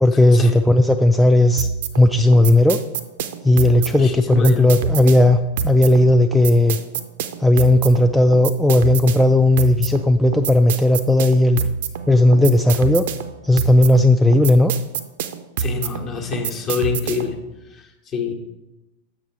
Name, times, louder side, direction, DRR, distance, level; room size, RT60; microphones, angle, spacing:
voice 1, 0.0-1.7 2.0-2.8 3.4-5.4 5.6-6.8 7.4-11.6 12.1-13.0 13.4-14.7, left 1 dB, ahead, 5 dB, 0.3 m, -15 dB
sound 1, 1.6-17.4, right 7 dB, 55° right, 0.5 m, -27 dB
voice 2, 3.8-4.7 15.6-17.3 18.1-18.3, left 6 dB, 30° left, 3 dB, 1.1 m, -26 dB
7.2 x 6.0 x 4.5 m, 1.0 s
figure-of-eight pair, 90°, 0 cm